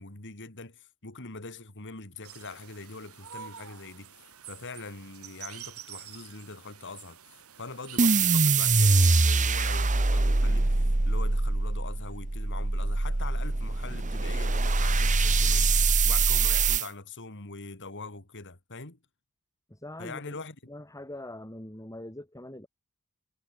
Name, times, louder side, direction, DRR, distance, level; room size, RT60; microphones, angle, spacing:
voice 1, 0.0-4.1 4.5-7.2 7.6-15.8 16.0-19.0 20.0-20.7, left 3 dB, 55° left, 3.3 m, -43 dB
sound 1, 2.2-8.2, right 9 dB, 75° right, 3.1 m, -47 dB
sound 2, 8.0-16.9, right 3 dB, 35° right, 1.1 m, -24 dB
voice 2, 19.7-20.4 20.7-22.7, left 1 dB, 15° left, 3.6 m, -42 dB
head